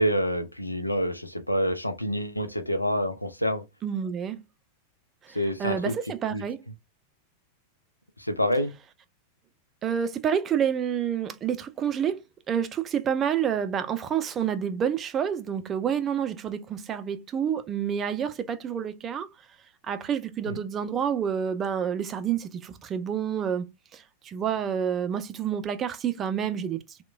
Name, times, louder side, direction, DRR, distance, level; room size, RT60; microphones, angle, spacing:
voice 1, 0.0-3.6 5.3-5.9 6.3-6.4 8.2-8.7 20.5-20.6, equal, 85° left, 0.4 m, -27 dB
voice 2, 3.8-4.4 5.2-6.6 9.8-19.3 19.8-23.7 23.9-26.8, right 8 dB, 25° right, 0.4 m, -28 dB
3.0 x 2.1 x 2.3 m
figure-of-eight pair, 90°, 0 cm